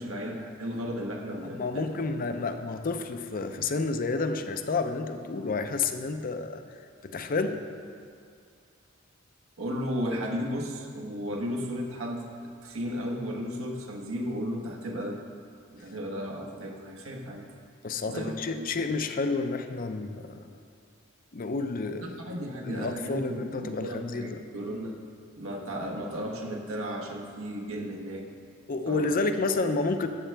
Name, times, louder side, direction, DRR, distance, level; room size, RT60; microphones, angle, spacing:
voice 1, 0.0-2.0 2.3-2.5 9.6-15.2 15.7-17.4 18.0-18.8 22.0-25.0 25.4-28.2 28.9-29.2 29.8-29.9, equal, 80° right, 1 dB, 1.3 m, -35 dB
voice 2, 1.4-6.6 7.0-7.7 17.8-20.5 21.3-24.4 28.7-30.1, left 3 dB, 40° left, 8 dB, 0.5 m, -30 dB
13.0 x 7.6 x 3.4 m, 2.3 s
head